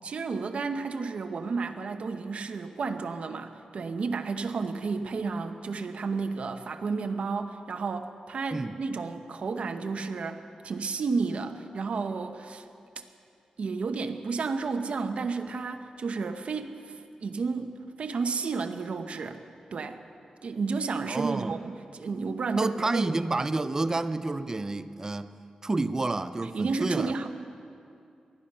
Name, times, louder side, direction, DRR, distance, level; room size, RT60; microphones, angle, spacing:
voice 1, 0.0-12.7 13.0-13.1 13.6-19.4 19.7-20.0 20.4-23.2 26.5-27.3, right 4 dB, 65° right, 7 dB, 0.9 m, -32 dB
voice 2, 21.1-21.6 22.6-25.3 25.6-27.3, right 2 dB, 25° right, 12 dB, 0.5 m, -29 dB
19.5 x 13.5 x 5.6 m, 2.6 s
wide cardioid pair, 110°, 2 cm